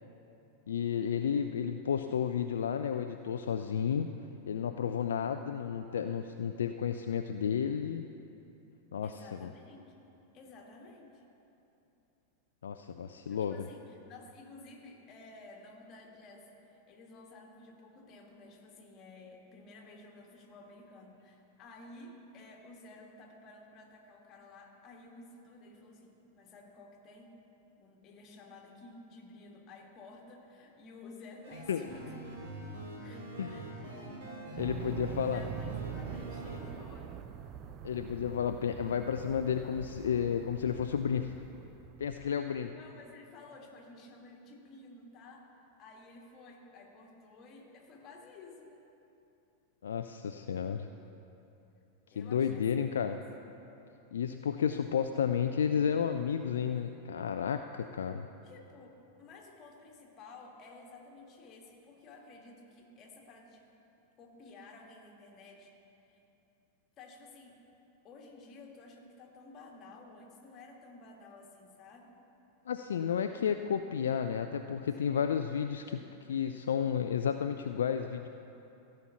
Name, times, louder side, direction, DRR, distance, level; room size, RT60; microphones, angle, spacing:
voice 1, 0.7-4.1 4.5-8.0 8.9-9.5 12.6-13.6 31.7-31.8 33.4-33.5 34.6-35.4 37.8-41.3 42.0-42.7 49.8-50.9 52.2-53.2 54.1-58.3 72.7-76.0 76.3-78.3, left 7 dB, 65° left, 7 dB, 0.3 m, -32 dB
voice 2, 9.0-10.1 10.3-11.2 13.3-27.3 27.8-32.1 33.0-34.0 34.8-37.3 42.7-48.8 52.1-53.2 58.4-63.6 64.2-65.7 66.1-66.2 67.0-67.5 68.0-72.2, left 3 dB, 30° left, 1 dB, 1.7 m, -53 dB
sound 1, 31.4-36.6, right 1 dB, 50° right, 2.9 m, -44 dB
sound 2, 34.6-42.3, right 9 dB, 35° right, 0.5 m, -44 dB
15.0 x 5.7 x 7.2 m, 2.9 s
figure-of-eight pair, 90°, 0 cm